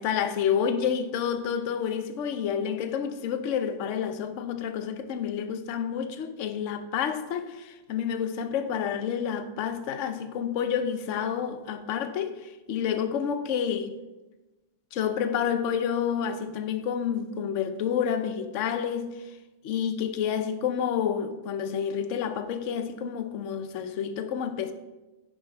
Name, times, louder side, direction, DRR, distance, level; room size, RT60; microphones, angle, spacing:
voice 1, 0.0-13.9 14.9-19.1 19.6-24.7, left 8 dB, 65° left, 0.7 m, -29 dB
10.0 x 5.5 x 5.6 m
omnidirectional pair, 2.0 m